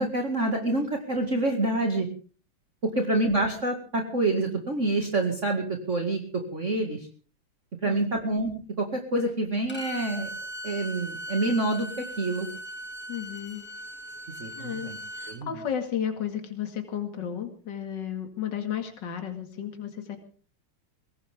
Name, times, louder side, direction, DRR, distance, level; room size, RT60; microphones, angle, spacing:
voice 1, 0.0-2.1 2.8-7.1 7.8-10.3 10.6-12.5 14.4-15.0 15.3-15.5, right 2 dB, 40° right, 2 dB, 2.5 m, -27 dB
Bowed string instrument, 9.7-15.4, equal, 5° left, 2.4 m, -39 dB
voice 2, 13.1-13.6 14.6-14.9 15.2-20.2, left 9 dB, 65° left, 5 dB, 2.7 m, -33 dB
22.5 x 17.5 x 3.6 m, 0.41 s
omnidirectional pair, 2.1 m